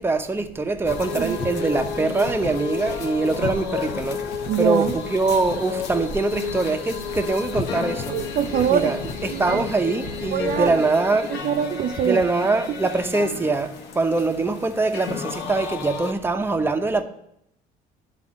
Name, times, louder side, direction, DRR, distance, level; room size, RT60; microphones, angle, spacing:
voice 1, 0.0-4.2 4.6-8.1 8.7-11.3 12.0-13.7 14.0-17.0, right 3 dB, 15° right, 0.8 m, -23 dB
sound 1, 0.8-16.1, left 6 dB, 80° left, 1.1 m, -32 dB
sound 2, 0.9-10.7, left 3 dB, 55° left, 1.1 m, -36 dB
voice 2, 4.5-4.9 8.1-8.9 9.3-9.6 10.3-10.7 11.3-12.2 12.7-12.8, right 9 dB, 55° right, 0.4 m, -23 dB
10.5 x 4.1 x 7.4 m
cardioid pair, 110°, 17 cm